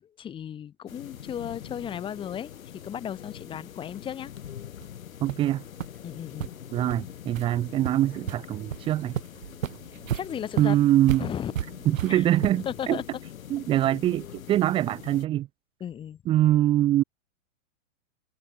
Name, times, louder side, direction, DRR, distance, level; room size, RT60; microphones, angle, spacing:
voice 1, 0.0-2.5 2.8-4.3 6.0-6.5 10.1-10.8 11.2-11.5 12.1-12.3 12.6-13.0 15.8-16.2, left 9 dB, 10° left, 6.8 m, -35 dB
sound 1, 0.9-15.3, left 9 dB, 85° left, 7.0 m, -43 dB
sound 2, 4.8-4.9 5.3-5.5 5.8-5.9 6.4-6.5 6.9-7.0 7.3-7.5 7.8-8.4 8.7-8.8 9.1-12.8, right 10 dB, 75° right, 5.7 m, -33 dB
voice 2, 5.2-5.6 6.7-9.2 10.6-11.3 11.8-13.0 13.5-15.5 16.2-17.0, right 13 dB, 15° right, 1.4 m, -23 dB
supercardioid pair, 180°, 40 cm